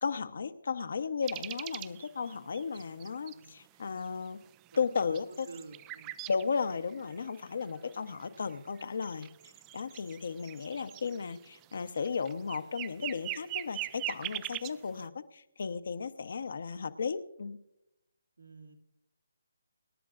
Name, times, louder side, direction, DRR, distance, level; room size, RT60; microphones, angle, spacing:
voice 1, 0.0-4.4 4.8-5.5 6.3-9.3 9.7-17.6, left 5 dB, 60° left, 11 dB, 0.9 m, -35 dB
sound 1, 1.2-3.4 4.1-4.2 4.5-6.4 6.8-14.7, right 17 dB, 20° right, 0.3 m, -42 dB
voice 2, 3.3-3.9 4.7-4.8 5.1-5.2 5.5-6.2 18.4-18.7, right 3 dB, 90° right, 1 dB, 2.3 m, -51 dB
26.0 x 10.5 x 2.5 m, 0.87 s
figure-of-eight pair, 155°, 0 cm